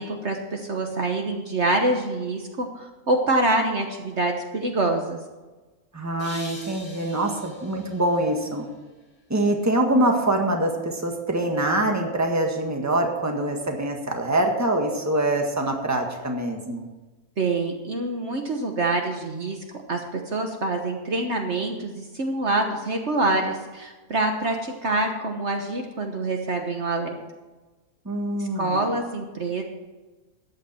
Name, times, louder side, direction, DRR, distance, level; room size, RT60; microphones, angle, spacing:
voice 1, 0.0-5.2 17.4-19.6 19.9-27.1 28.4-29.6, right 2 dB, 50° right, 3 dB, 1.4 m, -26 dB
voice 2, 5.9-8.7 9.3-16.9 28.0-28.9, right 1 dB, 10° right, 2 dB, 1.5 m, -24 dB
sound 1, 6.2-9.3, left 1 dB, 65° left, 3.4 m, -45 dB
14.0 x 9.8 x 4.4 m, 1.2 s
omnidirectional pair, 1.6 m